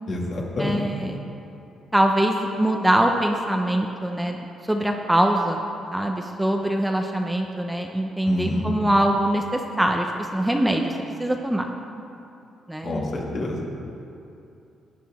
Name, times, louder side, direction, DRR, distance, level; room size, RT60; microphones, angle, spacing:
voice 1, 0.1-0.8 8.2-8.7 12.8-13.6, left 1 dB, 55° left, -3 dB, 2.1 m, -27 dB
voice 2, 0.6-1.2 1.9-5.6 5.9-10.9 11.2-11.7 12.7-12.9, right 1 dB, 5° right, 3 dB, 0.7 m, -23 dB
12.5 x 9.4 x 3.6 m, 2.7 s
cardioid pair, 90°, 0 cm